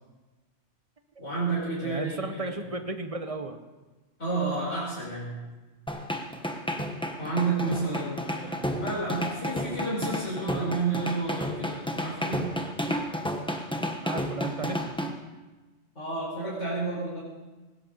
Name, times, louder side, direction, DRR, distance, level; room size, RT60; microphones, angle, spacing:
voice 1, 1.2-2.7 4.2-5.3 7.2-12.5 15.9-17.2, right 3 dB, 85° left, -7 dB, 6.1 m, -31 dB
voice 2, 1.8-3.6 14.0-14.9, right 2 dB, 30° right, 7 dB, 1.1 m, -34 dB
sound 1, 5.9-15.1, equal, 5° left, 1.1 m, -31 dB
19.0 x 16.5 x 4.1 m, 1.2 s
omnidirectional pair, 1.2 m